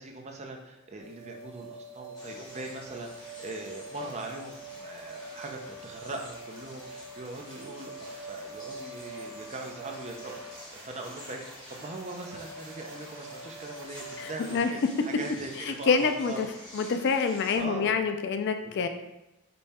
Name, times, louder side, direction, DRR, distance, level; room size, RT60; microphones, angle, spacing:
voice 1, 0.0-16.5 17.6-17.9 18.6-18.9, right 2 dB, 30° right, 2 dB, 0.5 m, -41 dB
sound 1, 1.0-14.6, right 2 dB, 55° right, 1.2 m, -45 dB
sound 2, 2.1-17.6, left 1 dB, 20° left, 1.0 m, -49 dB
voice 2, 14.2-14.7 15.7-16.5 16.7-18.9, left 5 dB, 50° left, 7 dB, 0.3 m, -27 dB
5.3 x 2.3 x 4.2 m, 0.94 s
head